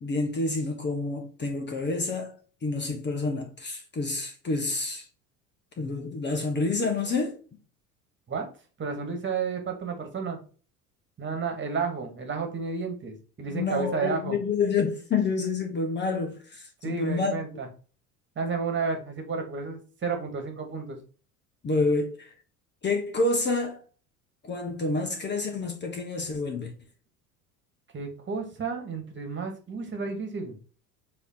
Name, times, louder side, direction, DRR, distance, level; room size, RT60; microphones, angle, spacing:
voice 1, 0.0-2.3 2.6-5.0 5.8-7.4 13.5-17.4 21.6-22.3 22.8-23.8 24.4-26.7, left 3 dB, 25° left, 1.4 m, -28 dB
voice 2, 8.8-10.4 11.2-14.4 16.8-17.7 18.4-21.0 27.9-30.6, right 5 dB, 25° right, 1.9 m, -31 dB
7.4 x 3.2 x 4.2 m
figure-of-eight pair, 70°, 46 cm